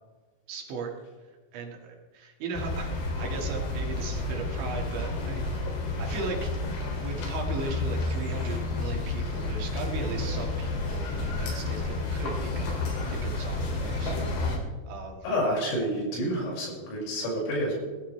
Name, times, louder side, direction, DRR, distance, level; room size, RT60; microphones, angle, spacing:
voice 1, 0.5-0.9 1.5-5.7 6.0-6.5 7.0-12.8 13.0-14.2 14.9-15.2, right 4 dB, 70° right, 0 dB, 4.2 m, -37 dB
sound 1, 2.5-14.6, left 2 dB, 65° left, 5.0 m, -30 dB
voice 2, 15.2-17.7, equal, 80° left, -4 dB, 8.4 m, -29 dB
21.0 x 13.5 x 3.3 m, 1.4 s
omnidirectional pair, 5.8 m